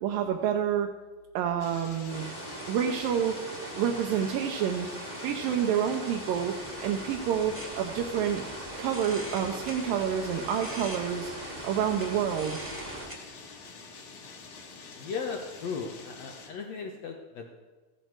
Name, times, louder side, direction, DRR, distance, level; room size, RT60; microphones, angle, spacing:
voice 1, 0.0-0.9 1.3-2.2 2.7-3.3 3.8-4.9 5.2-6.5 6.8-8.4 8.8-11.3 11.6-12.6, right 8 dB, 75° right, 1 dB, 2.3 m, -28 dB
sound 1, 1.6-16.5, left 4 dB, 55° left, 2.4 m, -47 dB
sound 2, 2.1-13.1, right 1 dB, 25° right, 1.2 m, -40 dB
sound 3, 6.4-13.2, equal, 5° right, 1.2 m, -46 dB
voice 2, 15.0-17.5, left 5 dB, 75° left, 3 dB, 1.5 m, -36 dB
15.5 x 11.0 x 4.7 m, 1.3 s
omnidirectional pair, 4.5 m